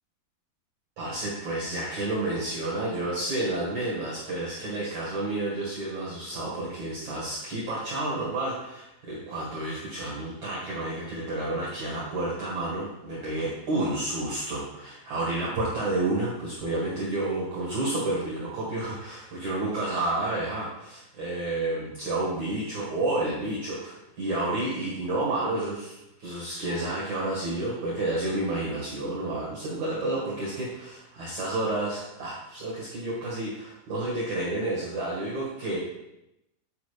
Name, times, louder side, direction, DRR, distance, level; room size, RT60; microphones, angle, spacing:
voice 1, 1.0-35.8, right 2 dB, 70° right, -6 dB, 1.8 m, -30 dB
9.3 x 4.9 x 3.3 m, 0.87 s
omnidirectional pair, 5.8 m